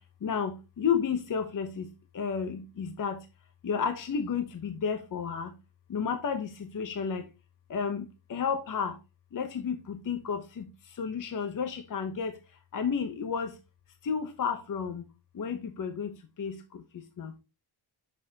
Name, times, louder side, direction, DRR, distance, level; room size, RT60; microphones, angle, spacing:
voice 1, 0.2-1.9 2.1-3.2 3.6-5.5 5.9-7.2 7.7-8.0 8.3-8.9 9.3-10.7 11.0-12.3 12.7-13.5 14.1-15.0 15.4-16.1 16.4-16.5 17.2-17.3, left 6 dB, 50° left, 0.9 m, -31 dB
6.8 x 5.5 x 2.8 m
wide cardioid pair, 130°, 43 cm